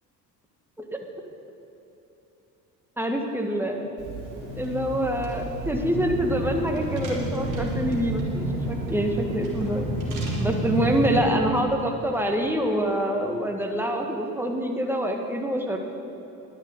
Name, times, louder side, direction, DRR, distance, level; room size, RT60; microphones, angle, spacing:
voice 1, 3.0-4.0 4.6-9.9 10.4-15.8, equal, 5° right, 3 dB, 1.6 m, -26 dB
Car / Engine, 4.0-11.2, right 1 dB, 80° right, 2.2 m, -30 dB
10.5 x 9.1 x 7.3 m, 2.9 s
hypercardioid pair, 50°, 49 cm